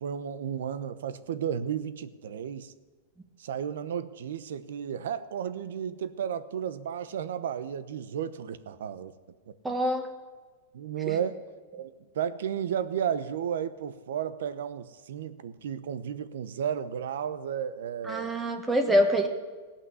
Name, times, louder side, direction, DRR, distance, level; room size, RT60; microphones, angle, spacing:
voice 1, 0.0-2.7 3.4-9.1 9.5-9.6 10.7-11.4 11.7-18.3, right 8 dB, 80° right, 14 dB, 0.9 m, -33 dB
voice 2, 9.6-10.1 11.1-11.2 18.0-19.3, equal, 10° right, 4 dB, 1.4 m, -25 dB
16.5 x 5.9 x 9.7 m, 1.4 s
supercardioid pair, 140°, 0 cm